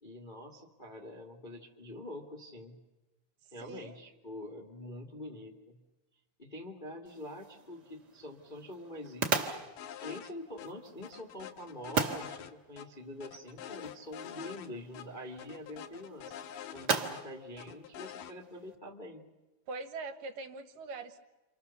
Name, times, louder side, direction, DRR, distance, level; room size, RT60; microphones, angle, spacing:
voice 1, 0.0-2.8 3.5-5.8 6.4-9.6 10.0-16.3 16.7-19.2, left 1 dB, 25° left, 0 dB, 1.1 m, -45 dB
voice 2, 3.4-4.0 19.7-21.2, right 3 dB, 70° right, 7 dB, 3.0 m, -42 dB
sound 1, 7.1-18.8, right 5 dB, 35° right, 1.9 m, -39 dB
sound 2, 9.8-10.3 10.6-10.7 11.0-12.9 13.2-14.7 14.9-15.1 15.4-17.2 17.6-18.3, left 10 dB, 75° left, 2.7 m, -46 dB
29.5 x 25.5 x 6.9 m, 1.1 s
omnidirectional pair, 4.1 m